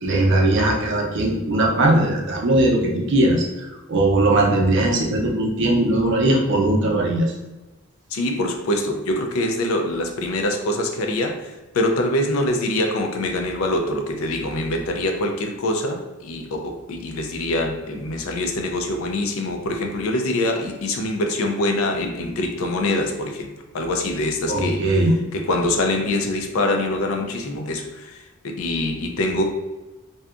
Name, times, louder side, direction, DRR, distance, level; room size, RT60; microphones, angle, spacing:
voice 1, 0.0-7.3 24.5-25.2, right 1 dB, 60° right, -1 dB, 0.5 m, -19 dB
voice 2, 8.1-11.4 11.7-23.5 23.7-24.8 25.3-27.9 28.4-29.4, left 1 dB, 90° left, 3 dB, 0.4 m, -24 dB
2.7 x 2.2 x 2.4 m, 1.1 s
head